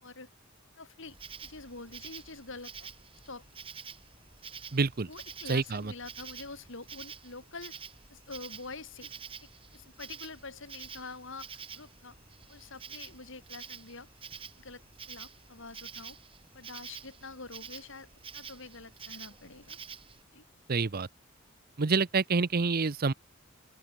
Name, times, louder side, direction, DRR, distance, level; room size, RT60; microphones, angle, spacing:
voice 1, 0.8-2.9 3.2-3.4 5.1-7.7 8.1-9.1 9.4-12.2 12.5-14.1 14.6-14.8 15.1-16.2 16.5-19.8 20.3-20.4, left 3 dB, 65° left, 4.1 m, -46 dB
Insect, 1.0-20.2, right 6 dB, 25° right, 1.5 m, -48 dB
voice 2, 4.7-5.1 5.5-5.9 20.7-21.1 21.8-23.1, right 4 dB, 45° right, 0.7 m, -27 dB
open air
head